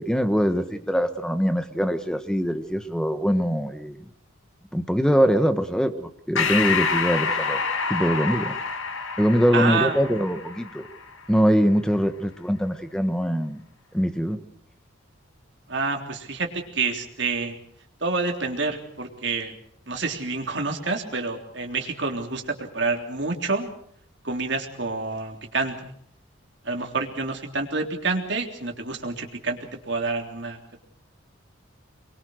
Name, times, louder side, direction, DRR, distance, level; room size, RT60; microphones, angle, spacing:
voice 1, 0.0-4.0 4.7-7.6 7.9-8.5 9.2-10.9 11.3-13.6 13.9-14.4, equal, 5° left, 9 dB, 1.3 m, -23 dB
Breathing, 6.4-11.2, left 5 dB, 70° left, 1.8 m, -27 dB
voice 2, 9.5-10.0 15.7-17.6 18.0-19.5 19.9-23.7 24.2-25.9 26.6-29.6 29.9-30.6, right 3 dB, 55° right, 3 dB, 3.5 m, -28 dB
25.0 x 22.5 x 6.5 m, 0.65 s
head